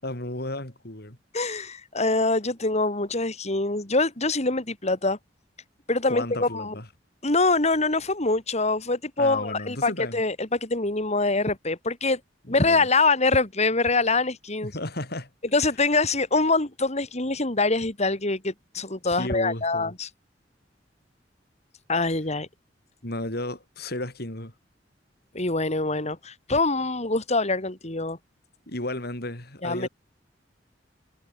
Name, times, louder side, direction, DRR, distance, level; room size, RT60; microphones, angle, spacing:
voice 1, 0.0-1.2 6.0-6.9 9.2-10.2 12.5-12.9 14.6-15.3 19.1-19.9 23.0-24.5 28.7-29.9, left 1 dB, 60° left, 6.4 m, -33 dB
voice 2, 1.3-5.2 5.9-6.7 7.2-12.2 12.5-14.7 15.5-20.1 21.9-22.5 25.3-28.2 29.6-29.9, left 3 dB, 40° left, 3.4 m, -24 dB
head